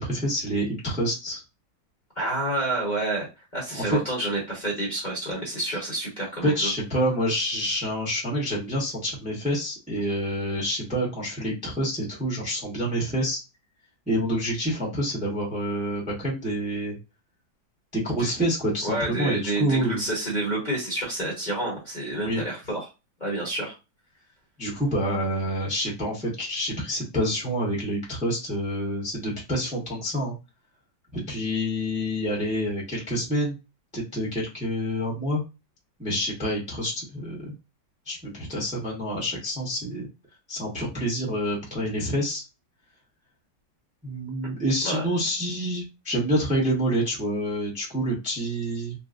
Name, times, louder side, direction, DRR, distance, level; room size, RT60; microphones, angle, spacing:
voice 1, 0.0-1.4 3.7-4.0 6.4-13.4 14.1-16.9 17.9-20.0 22.1-22.4 24.6-30.3 31.1-33.5 33.9-35.4 36.0-37.5 38.1-40.1 40.5-42.4 44.0-48.9, equal, 5° right, -3 dB, 0.9 m, -27 dB
voice 2, 2.2-3.3 3.5-6.7 18.2-18.3 18.8-22.9 23.2-23.7 44.4-44.5 44.8-45.0, right 1 dB, 30° left, -5 dB, 1.1 m, -29 dB
3.9 x 2.2 x 2.4 m, 0.27 s
omnidirectional pair, 2.1 m